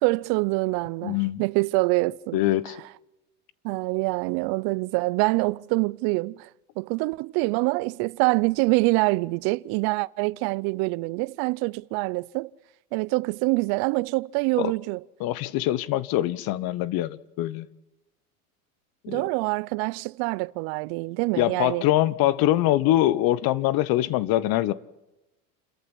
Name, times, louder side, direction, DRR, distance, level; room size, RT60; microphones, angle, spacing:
voice 1, 0.0-2.4 3.6-6.5 6.8-12.5 12.9-15.0 19.1-21.8, right 25 dB, 55° right, 0.7 m, -25 dB
voice 2, 1.0-1.4 2.3-2.8 14.6-14.7 15.2-17.7 19.0-19.3 21.4-24.7, left 14 dB, 50° left, 1.2 m, -23 dB
29.5 x 14.0 x 7.2 m
hypercardioid pair, 100°, 45 cm